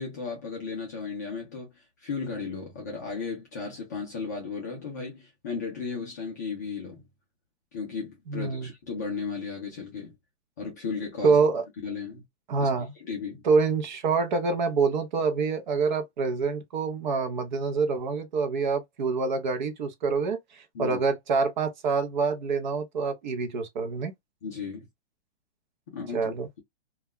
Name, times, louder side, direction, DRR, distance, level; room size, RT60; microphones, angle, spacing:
voice 1, 0.0-1.7 2.0-7.0 7.7-10.1 10.6-11.4 11.8-12.2 12.6-12.7 13.0-13.4 20.7-21.0 24.4-24.9 25.9-26.6, left 5 dB, 15° left, 0.4 m, -35 dB
voice 2, 8.3-8.7 11.2-11.6 12.5-12.9 13.4-24.1 26.1-26.6, right 4 dB, 45° right, 0.6 m, -26 dB
2.3 x 2.1 x 3.5 m
hypercardioid pair, 160°, 33 cm